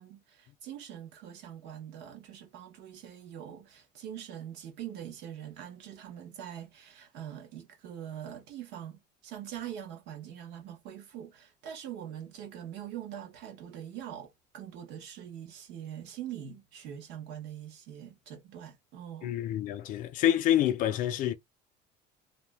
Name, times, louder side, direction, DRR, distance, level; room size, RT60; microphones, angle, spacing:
voice 1, 0.0-19.4, right 10 dB, 65° right, 1.0 m, -43 dB
voice 2, 19.2-21.3, left 11 dB, 45° left, 0.4 m, -27 dB
2.7 x 2.1 x 3.3 m
cardioid pair, 175°, 19 cm